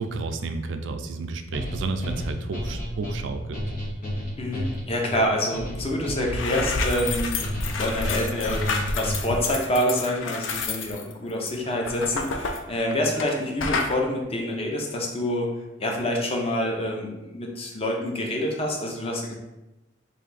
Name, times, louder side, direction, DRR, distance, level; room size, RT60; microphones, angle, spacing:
voice 1, 0.0-3.6, right 3 dB, 70° right, 7 dB, 0.4 m, -31 dB
sound 1, 1.5-9.4, equal, 45° left, 1.4 m, -32 dB
voice 2, 4.4-7.4 7.8-15.5 15.8-19.3, left 1 dB, 30° left, 0 dB, 0.6 m, -27 dB
sound 2, 5.8-6.0 6.2-13.3 13.6-13.9, left 3 dB, 75° left, 0.4 m, -29 dB
3.3 x 2.6 x 3.9 m, 0.98 s
head